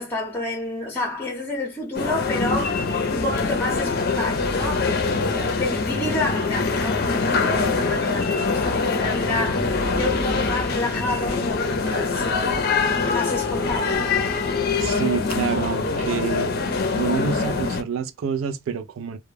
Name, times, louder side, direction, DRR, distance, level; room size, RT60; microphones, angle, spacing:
voice 1, 0.0-2.8 3.1-4.9 5.2-11.6 11.8-12.6 13.0-14.1, left 2 dB, 10° left, 0.6 m, -29 dB
sound 1, 1.9-17.8, left 4 dB, 50° left, 0.5 m, -24 dB
voice 2, 14.8-16.5 16.9-19.2, right 6 dB, 85° right, 0.4 m, -27 dB
2.1 x 2.1 x 3.2 m
head